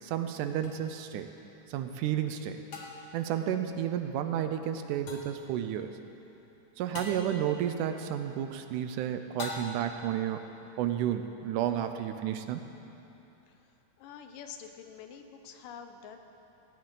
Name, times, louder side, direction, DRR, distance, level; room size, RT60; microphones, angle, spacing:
voice 1, 0.0-1.3 1.7-2.6 3.1-6.0 6.8-10.4 10.8-12.6, right 10 dB, 80° right, 8 dB, 2.0 m, -31 dB
sound 1, 0.6-0.7 2.7-3.2 5.1-5.4 6.9-7.3 9.4-10.0, left 3 dB, 50° left, 1.3 m, -40 dB
voice 2, 14.0-16.2, left 7 dB, 80° left, 7 dB, 2.4 m, -47 dB
18.5 x 16.0 x 3.9 m, 3.0 s
omnidirectional pair, 3.9 m